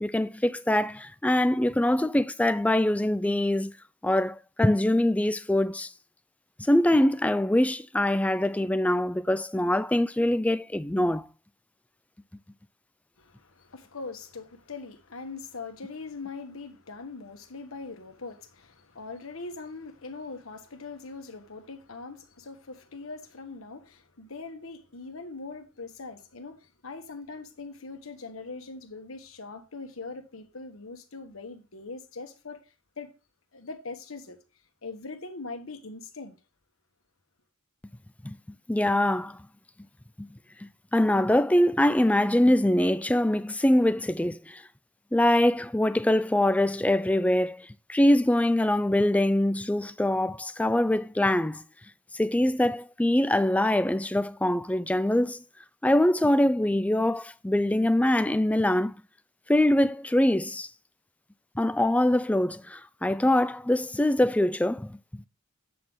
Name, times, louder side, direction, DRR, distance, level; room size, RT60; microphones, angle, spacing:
voice 1, 0.0-3.7 4.0-5.9 6.7-11.3 38.2-38.4 38.7-39.4 40.2-40.3 40.6-44.6 45.1-51.6 52.1-55.4 55.8-59.0 59.5-60.7 61.6-65.2, left 1 dB, 5° left, 0.3 m, -24 dB
voice 2, 13.2-32.6 33.0-33.1 33.5-34.4 34.8-36.3, left 3 dB, 80° left, 1.3 m, -41 dB
8.5 x 3.7 x 6.2 m
head